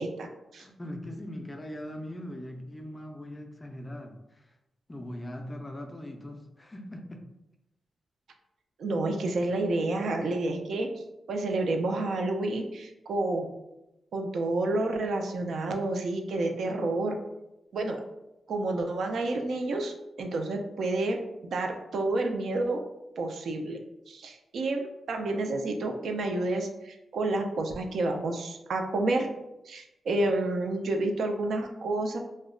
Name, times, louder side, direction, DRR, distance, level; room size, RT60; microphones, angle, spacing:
voice 1, 0.0-0.6 8.8-10.9 11.3-13.5 14.1-17.2 17.7-18.0 18.5-21.2 21.5-22.8 23.2-23.8 24.1-29.3 29.7-32.2, right 2 dB, 70° right, 3 dB, 0.3 m, -29 dB
voice 2, 0.6-4.6 4.9-7.2, left 1 dB, 15° left, 3 dB, 0.3 m, -40 dB
2.1 x 2.0 x 3.6 m, 0.92 s
wide cardioid pair, 120°, 0 cm